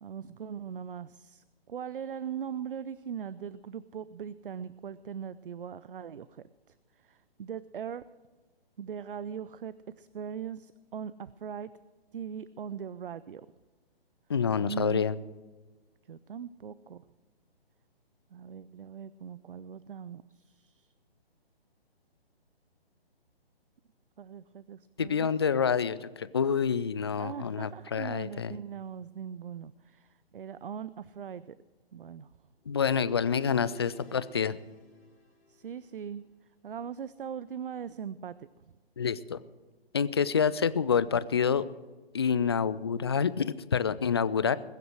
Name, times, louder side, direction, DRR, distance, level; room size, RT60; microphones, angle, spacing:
voice 1, 0.0-6.5 7.0-8.0 8.8-11.7 12.1-13.5 14.6-15.0 16.1-17.0 18.3-20.9 24.2-25.3 27.2-31.6 31.9-32.3 35.5-36.2 36.6-38.5, right 7 dB, 60° right, 17 dB, 0.6 m, -40 dB
voice 2, 14.3-15.1 25.0-28.5 32.7-34.6 39.0-39.4 39.9-41.7 42.1-44.6, left 6 dB, 25° left, 17 dB, 0.4 m, -27 dB
sound 1, 32.6-35.9, left 4 dB, 80° left, 4.3 m, -52 dB
21.0 x 7.8 x 6.4 m, 1.3 s
figure-of-eight pair, 135°, 31 cm